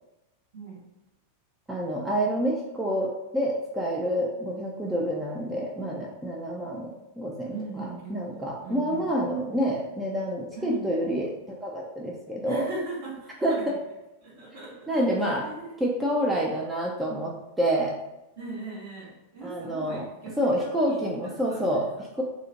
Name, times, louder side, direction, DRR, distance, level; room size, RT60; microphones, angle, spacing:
voice 1, 1.7-6.9 7.2-12.7 13.4-13.6 14.9-15.4 15.8-17.9 19.4-20.0 20.4-22.2, equal, 10° right, -3 dB, 0.3 m, -28 dB
voice 2, 7.5-9.1 10.5-10.9 12.4-13.7 14.2-15.8 18.4-22.0, right 3 dB, 55° right, -6 dB, 0.9 m, -39 dB
2.3 x 2.1 x 2.7 m, 0.94 s
figure-of-eight pair, 90°, 0 cm